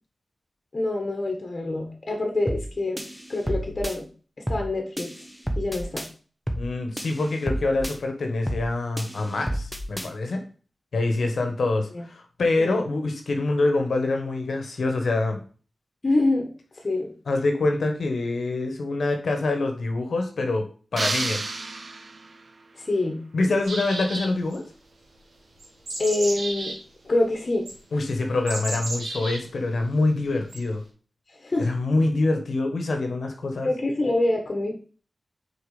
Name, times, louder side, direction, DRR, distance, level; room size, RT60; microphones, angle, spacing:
voice 1, 0.7-3.0 3.3-4.1 4.5-5.1 5.6-6.0 11.9-12.0 12.6-12.8 16.0-16.5 16.8-17.1 22.7-23.2 23.5-23.6 26.0-26.7 27.0-27.7 31.3-31.7 33.6-34.7, left 2 dB, 50° left, 2 dB, 1.4 m, -25 dB
sound 1, 2.5-2.7 3.0-4.0 4.5-4.7 5.0-6.1 6.5-6.7 7.0-8.0 8.5-8.7 9.0-10.1, equal, 5° right, 1.1 m, -30 dB
voice 2, 6.6-10.4 10.9-15.4 17.3-20.6 20.9-21.4 23.3-24.6 27.9-30.8 31.6-33.7, left 2 dB, 80° left, 4 dB, 1.1 m, -25 dB
sound 2, 21.0-22.5, right 3 dB, 55° right, 0.7 m, -30 dB
sound 3, 23.6-24.6 25.6-26.8 27.7-27.8 28.5-29.4 30.5-30.6, right 2 dB, 85° right, 2.4 m, -32 dB
5.1 x 4.6 x 4.9 m, 0.40 s
cardioid pair, 50°, 0 cm